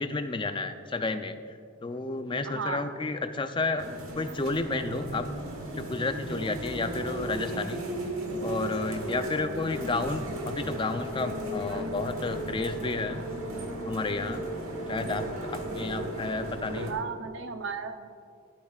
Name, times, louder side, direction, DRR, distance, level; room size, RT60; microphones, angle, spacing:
voice 1, 0.0-1.4 1.8-3.9 4.2-5.3 5.7-7.8 8.4-13.3 13.9-14.5 14.9-17.0, left 3 dB, 25° left, 8 dB, 0.4 m, -31 dB
voice 2, 2.4-2.9 16.8-18.1, right 5 dB, 60° right, 8 dB, 0.6 m, -35 dB
sound 1, 3.8-16.9, right 1 dB, 80° right, 1.4 m, -35 dB
13.5 x 11.5 x 2.4 m, 2.4 s
head